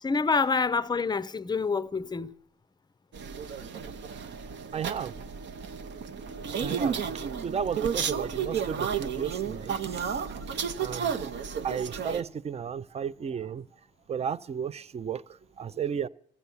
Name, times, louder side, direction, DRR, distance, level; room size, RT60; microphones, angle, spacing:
voice 1, 0.0-2.3, left 4 dB, 20° left, 0.5 m, -27 dB
sound 1, 3.1-12.2, right 7 dB, 65° right, 0.8 m, -32 dB
voice 2, 4.7-5.2 6.6-10.1 10.8-11.1 11.6-13.6 14.1-15.2 15.6-16.1, right 7 dB, 30° right, 0.5 m, -34 dB
14.5 x 8.0 x 7.1 m
cardioid pair, 90°, 20 cm